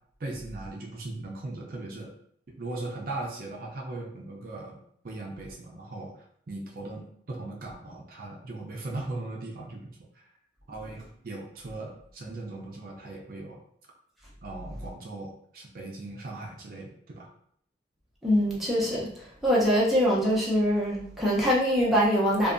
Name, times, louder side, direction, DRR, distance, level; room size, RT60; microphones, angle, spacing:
voice 1, 0.2-2.1 2.5-10.0 10.7-13.6 14.4-17.3, right 2 dB, 55° right, -1 dB, 0.5 m, -39 dB
voice 2, 18.2-19.1 19.4-22.5, equal, ahead, -7 dB, 0.6 m, -23 dB
2.6 x 2.3 x 2.4 m, 0.67 s
head